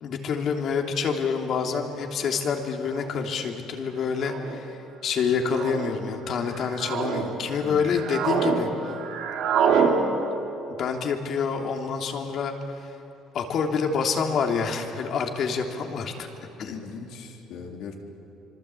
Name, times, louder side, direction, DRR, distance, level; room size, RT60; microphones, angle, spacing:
voice 1, 0.0-8.7 9.7-10.0 10.8-12.5 13.3-16.3 16.6-16.7, left 6 dB, 55° left, 3 dB, 3.0 m, -27 dB
sound 1, 1.9-2.0 3.0-3.3 4.2-4.6 5.4-5.9 6.5-7.2 7.7-8.6 8.8-9.9, right 7 dB, 75° right, 3.1 m, -26 dB
voice 2, 7.6-8.0 16.7-17.9, left 5 dB, 75° left, 1 dB, 3.6 m, -39 dB
25.5 x 24.5 x 8.5 m, 2.9 s
cardioid pair, 115°, 0 cm